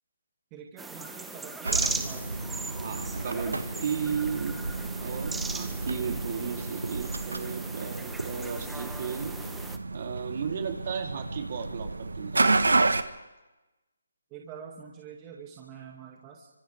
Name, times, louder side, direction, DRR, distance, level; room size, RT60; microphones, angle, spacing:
voice 1, 0.5-2.3 14.3-16.5, right 7 dB, 20° right, -1 dB, 2.3 m, -45 dB
sound 1, 0.8-9.8, right 3 dB, 5° right, 0.9 m, -38 dB
sound 2, 1.6-13.0, right 3 dB, 85° right, 1.4 m, -31 dB
voice 2, 2.7-4.6 5.0-9.3 9.9-12.5, right 6 dB, 45° right, 2 dB, 3.3 m, -34 dB
30.0 x 25.5 x 3.6 m, 1.1 s
figure-of-eight pair, 155°, 0 cm